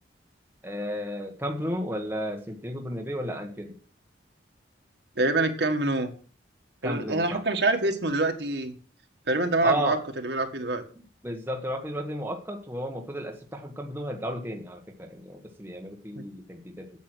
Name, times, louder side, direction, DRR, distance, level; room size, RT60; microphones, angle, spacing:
voice 1, 0.6-3.8 6.8-7.4 9.6-10.0 11.2-16.9, equal, 10° right, 2 dB, 1.3 m, -33 dB
voice 2, 5.2-6.1 6.8-8.7 9.3-10.0 10.2-10.8 16.2-16.3, right 2 dB, 65° right, 4 dB, 1.8 m, -25 dB
8.8 x 8.3 x 6.3 m, 0.42 s
head